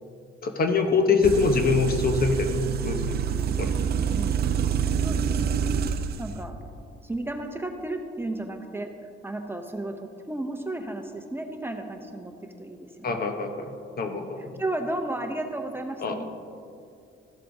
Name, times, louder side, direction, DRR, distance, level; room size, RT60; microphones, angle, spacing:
voice 1, 0.4-2.5 2.8-3.1 3.6-3.7 13.0-13.7 14.0-14.5 16.0-16.2, left 4 dB, 50° left, 6 dB, 0.9 m, -24 dB
sound 1, 1.2-6.3, right 7 dB, 55° right, 0.5 m, -27 dB
voice 2, 4.1-4.5 5.0-5.6 6.2-6.6 7.0-13.2 14.1-16.2, right 2 dB, 10° right, 4 dB, 0.7 m, -34 dB
13.5 x 7.5 x 2.7 m, 2.5 s
cardioid pair, 90°, 20 cm